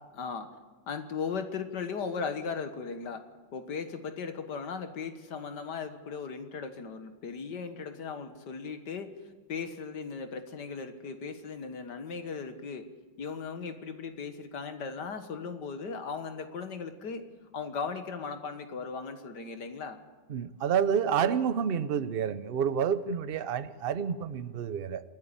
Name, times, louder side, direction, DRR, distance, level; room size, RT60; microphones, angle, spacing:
voice 1, 0.2-0.5 0.9-3.2 3.5-9.2 9.5-12.9 13.2-17.2 17.5-20.0, left 5 dB, 65° left, 8 dB, 2.0 m, -37 dB
voice 2, 20.3-25.0, right 7 dB, 70° right, 13 dB, 0.5 m, -29 dB
28.0 x 9.6 x 9.9 m, 1.4 s
omnidirectional pair, 2.0 m